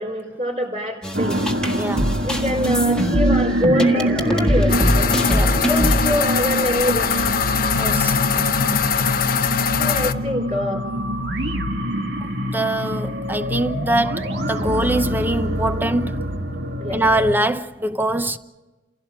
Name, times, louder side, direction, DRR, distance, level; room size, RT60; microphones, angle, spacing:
voice 1, 0.0-1.5 2.2-5.1 5.7-7.4 9.8-10.9 16.8-17.0, left 1 dB, 35° right, 4.3 m, -25 dB
sound 1, 1.0-6.1, equal, 5° left, 1.7 m, -23 dB
sound 2, 1.1-17.3, equal, 85° right, 2.1 m, -24 dB
voice 2, 1.8-2.1 5.3-5.6 7.8-8.1 12.4-16.2 16.9-18.4, right 1 dB, 10° right, 0.8 m, -23 dB
sound 3, 4.7-10.1, left 7 dB, 55° left, 1.0 m, -22 dB
29.0 x 16.5 x 7.5 m
head